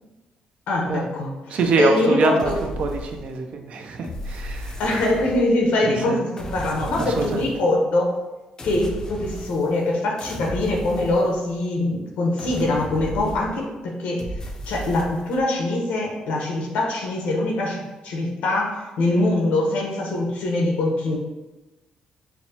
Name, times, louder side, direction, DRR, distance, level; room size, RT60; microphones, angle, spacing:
voice 1, 0.7-2.6 4.8-8.1 8.6-14.3 14.7-21.2, left 2 dB, 85° left, -1 dB, 0.9 m, -23 dB
voice 2, 1.5-4.8 5.9-6.2 7.0-7.5, right 4 dB, 60° right, 4 dB, 0.5 m, -24 dB
sound 1, 2.4-3.5 4.0-5.7 6.4-7.7 8.6-9.9 10.2-11.8 12.4-13.7 14.2-15.5, equal, 25° left, 0.5 m, -35 dB
5.7 x 2.0 x 2.8 m, 1.1 s
cardioid pair, 115°, 2 cm